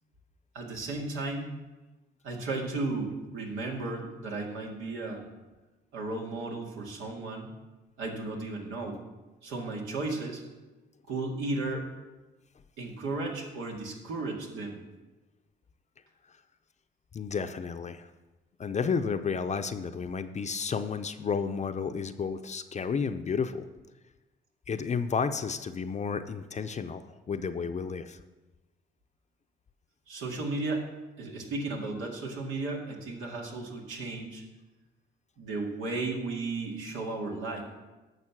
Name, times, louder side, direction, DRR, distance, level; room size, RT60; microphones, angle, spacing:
voice 1, 0.5-1.5 2.2-5.2 5.9-7.5 8.0-9.0 9.4-10.4 11.1-11.9 12.8-14.8 30.1-30.8 31.2-34.4 35.4-37.6, right 3 dB, 90° right, 0 dB, 2.1 m, -34 dB
voice 2, 17.1-18.1 18.6-23.7 24.7-28.2, left 5 dB, 35° left, 8 dB, 0.6 m, -32 dB
11.0 x 6.6 x 6.0 m, 1.1 s
cardioid pair, 90°, 20 cm